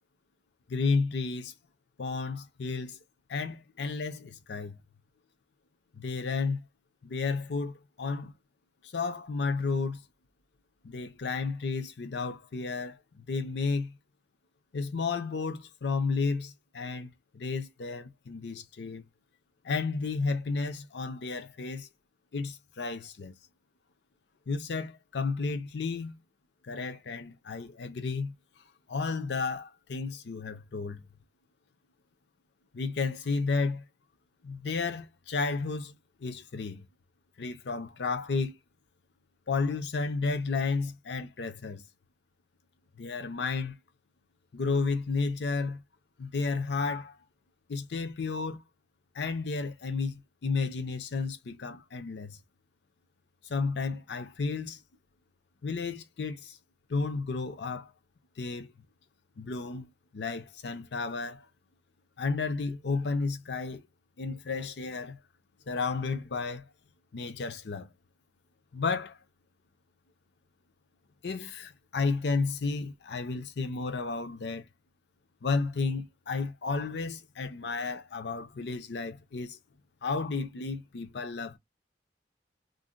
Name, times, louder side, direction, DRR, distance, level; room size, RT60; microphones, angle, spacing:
voice 1, 0.7-1.5 2.0-3.0 3.3-4.8 5.9-6.6 7.0-8.3 8.8-10.0 10.8-13.9 14.7-19.0 19.6-21.9 22.3-23.3 24.5-26.1 26.6-28.3 28.9-31.1 32.7-33.8 34.4-36.9 37.4-38.5 39.5-41.8 43.0-43.8 44.5-45.8 46.2-47.2 47.7-48.6 49.1-52.4 53.5-54.8 55.6-56.6 56.9-57.9 58.4-58.7 59.4-61.5 62.2-63.8 64.2-65.2 65.7-66.7 67.1-67.9 68.7-69.2 71.2-74.7 75.4-79.6 80.0-81.6, left 4 dB, 70° left, 0.5 m, -32 dB
2.6 x 2.1 x 3.7 m
head